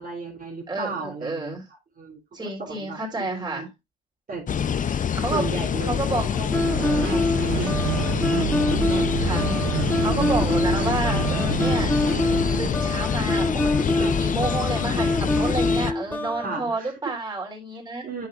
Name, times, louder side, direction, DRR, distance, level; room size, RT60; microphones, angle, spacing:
voice 1, 0.0-1.6 2.0-2.5 2.8-3.7 4.3-4.5 5.3-9.2 13.9-14.2 16.3-16.9 18.0-18.3, right 3 dB, 45° right, 2.7 m, -35 dB
voice 2, 0.7-1.7 2.3-3.7 4.9-5.5 5.8-6.4 6.7-7.2 9.2-11.9 12.6-18.0, right 2 dB, 20° right, 3.6 m, -30 dB
sound 1, 4.5-15.9, left 7 dB, 40° left, 0.6 m, -26 dB
sound 2, 6.5-16.6, left 1 dB, 10° left, 1.4 m, -26 dB
sound 3, 6.5-12.7, right 12 dB, 85° right, 0.7 m, -29 dB
10.0 x 6.0 x 2.5 m
cardioid pair, 90°, 20 cm